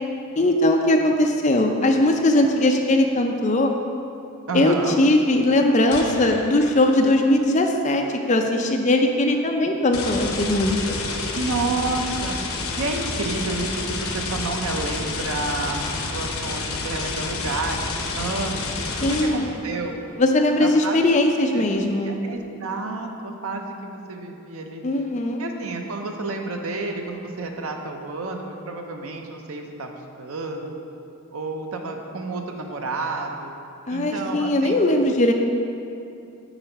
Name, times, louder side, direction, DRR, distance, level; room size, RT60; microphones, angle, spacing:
voice 1, 0.4-3.7 4.5-11.0 19.0-19.5 20.2-22.1 24.8-25.4 33.9-35.3, left 1 dB, 35° left, 3 dB, 0.5 m, -20 dB
voice 2, 4.5-5.0 11.3-20.0 20.6-21.0 21.5-24.8 25.4-30.8 31.3-33.5 33.9-34.8, right 3 dB, 80° right, 3 dB, 0.7 m, -30 dB
sound 1, 5.9-6.9 9.9-19.7, left 3 dB, 85° left, 0.7 m, -29 dB
8.1 x 3.9 x 4.5 m, 2.7 s
head